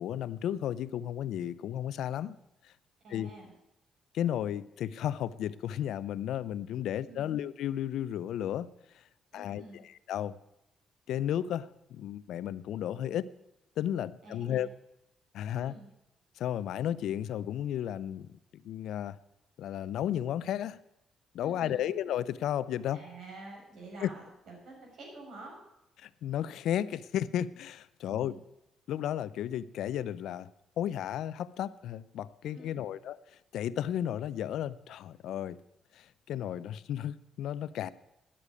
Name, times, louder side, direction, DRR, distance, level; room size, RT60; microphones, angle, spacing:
voice 1, 0.0-2.4 2.6-2.7 3.1-3.3 4.1-8.7 8.9-9.0 9.3-10.3 11.1-13.3 13.8-14.7 15.3-15.7 16.4-19.2 19.6-20.8 21.3-23.0 24.0-24.1 26.0-28.3 28.9-30.5 30.8-35.6 35.9-37.9, left 11 dB, 80° left, 17 dB, 0.5 m, -33 dB
voice 2, 3.0-3.5 7.1-7.3 9.3-9.8 14.2-14.7 15.5-15.9 21.4-21.8 22.9-25.6 28.1-28.4 32.5-32.9, right 2 dB, 65° right, -1 dB, 6.1 m, -48 dB
10.0 x 8.2 x 9.6 m, 0.87 s
cardioid pair, 90°, 0 cm